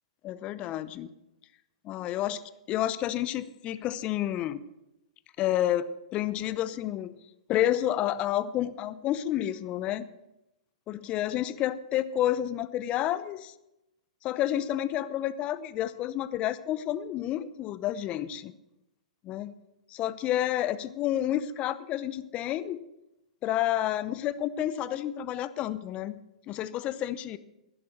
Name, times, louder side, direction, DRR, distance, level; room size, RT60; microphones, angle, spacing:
voice 1, 0.2-1.1 1.8-2.4 2.7-4.6 5.4-7.1 7.5-10.1 10.9-13.5 14.2-18.5 19.2-19.5 19.9-22.8 23.4-26.2 26.5-27.4, left 12 dB, 30° left, 16 dB, 0.7 m, -30 dB
11.5 x 11.0 x 6.3 m, 0.90 s
hypercardioid pair, 120°, 4 cm